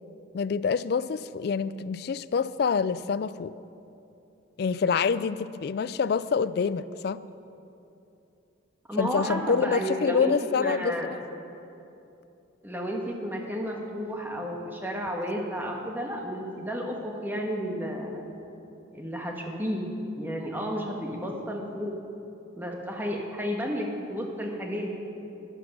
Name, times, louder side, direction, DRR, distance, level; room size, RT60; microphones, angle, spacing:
voice 1, 0.3-3.5 4.6-7.2 8.9-11.2, left 5 dB, 55° left, 16 dB, 0.3 m, -26 dB
voice 2, 8.9-11.1 12.6-18.3 18.9-19.9 20.2-21.9 22.6-24.9, equal, 10° right, 0 dB, 1.4 m, -32 dB
11.5 x 11.0 x 6.1 m, 2.8 s
head